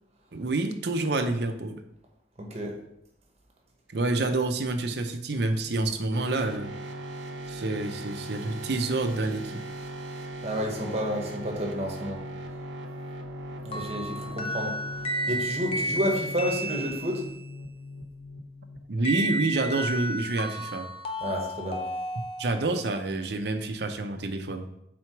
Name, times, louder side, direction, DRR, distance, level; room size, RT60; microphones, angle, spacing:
voice 1, 0.3-1.8 3.9-6.7 7.5-9.6 18.9-20.9 22.4-24.7, right 2 dB, 65° right, 6 dB, 0.7 m, -28 dB
voice 2, 2.4-2.8 10.4-12.2 13.6-14.8 15.2-17.2 21.2-21.8, equal, 35° right, 0 dB, 1.0 m, -30 dB
sound 1, 6.1-19.6, equal, 85° right, 1.0 m, -39 dB
sound 2, 13.7-17.5 19.0-22.8, right 1 dB, 30° left, 0.8 m, -33 dB
4.5 x 4.2 x 5.8 m, 0.80 s
head